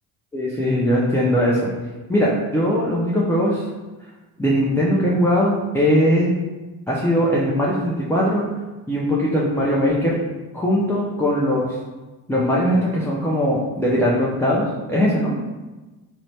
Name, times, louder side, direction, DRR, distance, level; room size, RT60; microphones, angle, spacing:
voice 1, 0.3-1.7 2.1-3.6 4.4-6.3 6.9-8.4 8.9-10.2 10.5-11.8 12.3-15.3, equal, 5° left, -6 dB, 0.3 m, -20 dB
3.0 x 2.0 x 2.7 m, 1.2 s
supercardioid pair, 70°, 45 cm